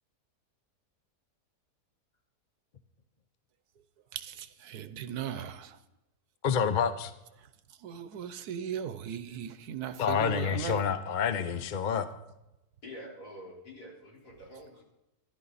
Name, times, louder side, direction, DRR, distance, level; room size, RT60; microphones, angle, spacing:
voice 1, 4.1-5.8 7.4-10.9, right 9 dB, 75° right, 1.3 m, -38 dB
voice 2, 6.4-7.1 10.0-12.1, left 7 dB, 45° left, 0.7 m, -28 dB
voice 3, 12.8-14.8, equal, 80° left, 4.5 m, -46 dB
14.0 x 11.5 x 4.1 m
omnidirectional pair, 1.7 m